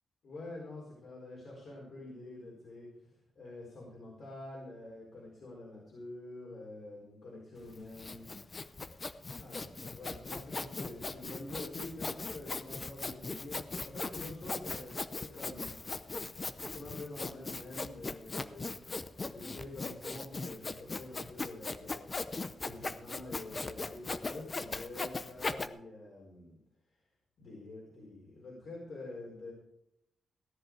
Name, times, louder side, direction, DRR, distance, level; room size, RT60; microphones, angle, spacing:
voice 1, 0.2-8.3 9.4-14.9 15.2-15.7 16.6-18.7 19.3-22.2 22.6-26.6 27.4-29.5, left 2 dB, 55° left, -4 dB, 4.4 m, -47 dB
Sawing, 7.6-25.7, left 3 dB, 25° left, 0.6 m, -39 dB
16.5 x 11.0 x 4.8 m, 0.80 s
wide cardioid pair, 165°, 0 cm